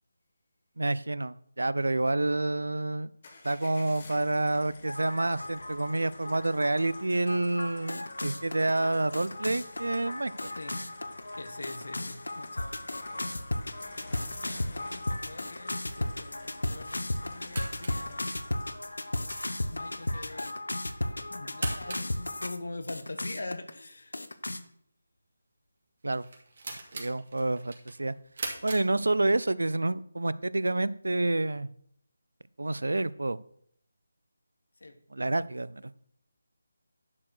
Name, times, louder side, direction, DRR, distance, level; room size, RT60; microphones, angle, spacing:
voice 1, 0.8-3.1 3.4-10.5 26.0-26.2 26.9-28.1 28.6-31.7 32.6-33.4 35.1-35.9, right 2 dB, 85° right, 18 dB, 0.5 m, -28 dB
sound 1, 3.2-19.2, left 3 dB, 40° left, 1.8 m, -52 dB
sound 2, 4.9-22.6 22.9-23.7 24.1-24.6, left 1 dB, 90° left, 0.9 m, -35 dB
voice 2, 10.6-10.9 11.3-12.8 14.3-18.3 19.7-20.6 21.3-24.2 34.8-35.0, left 2 dB, 75° left, 8 dB, 1.4 m, -43 dB
sound 3, 14.0-29.6, right 3 dB, 55° right, 2.8 m, -45 dB
10.5 x 4.8 x 6.5 m, 0.66 s
figure-of-eight pair, 160°, 0 cm